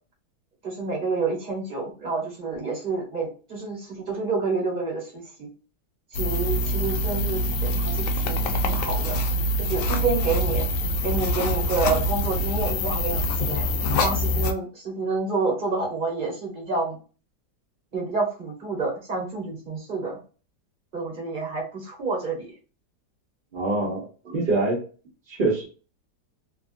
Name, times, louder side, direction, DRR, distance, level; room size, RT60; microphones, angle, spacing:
voice 1, 0.6-5.5 6.1-9.2 9.6-10.6 11.0-13.7 14.0-17.0 17.9-20.2 20.9-22.5 24.2-24.4, right 3 dB, 30° right, -1 dB, 1.1 m, -29 dB
sound 1, 6.1-14.5, equal, 70° left, 0.7 m, -25 dB
voice 2, 23.5-24.1 24.3-24.8 25.3-25.7, right 2 dB, 50° right, -3 dB, 0.6 m, -24 dB
2.9 x 2.4 x 2.5 m, 0.37 s
omnidirectional pair, 1.8 m